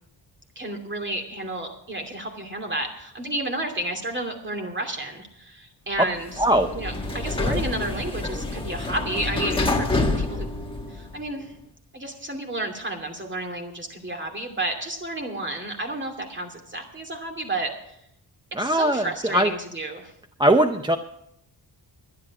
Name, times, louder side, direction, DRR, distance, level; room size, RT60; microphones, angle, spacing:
voice 1, 0.6-6.4 6.7-9.9 10.2-10.5 10.9-11.5 11.9-18.0 18.6-20.1, right 1 dB, 25° right, 3 dB, 2.7 m, -31 dB
Sliding door, 6.1-11.3, left 2 dB, 10° left, 1.6 m, -27 dB
voice 2, 6.4-6.8 7.5-7.6 18.5-19.5 20.4-21.0, right 1 dB, 10° right, 7 dB, 0.6 m, -20 dB
11.5 x 11.0 x 6.0 m, 0.75 s
cardioid pair, 105°, 41 cm